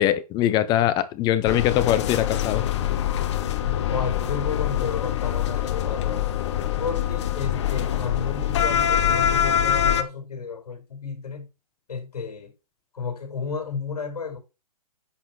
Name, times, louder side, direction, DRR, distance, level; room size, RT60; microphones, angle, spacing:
voice 1, 0.0-2.6, left 12 dB, 20° left, 0.9 m, -22 dB
sound 1, 1.4-10.0, left 10 dB, 45° left, 1.1 m, -24 dB
voice 2, 3.6-6.2 6.8-11.5 11.9-12.5 12.9-14.4, left 5 dB, 70° left, 4.9 m, -32 dB
10.0 x 6.1 x 4.4 m
hypercardioid pair, 140°, 20 cm